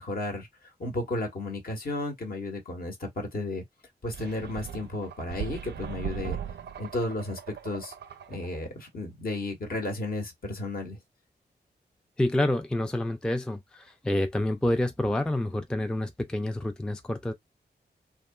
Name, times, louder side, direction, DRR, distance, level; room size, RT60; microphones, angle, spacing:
voice 1, 0.0-3.6 4.0-6.4 6.8-7.9 8.3-11.0, left 2 dB, 60° left, 1.2 m, -33 dB
sound 1, 4.1-8.7, right 9 dB, 85° right, 0.5 m, -39 dB
voice 2, 12.2-17.3, left 1 dB, 5° left, 0.3 m, -28 dB
2.8 x 2.3 x 2.2 m
cardioid pair, 65°, 17 cm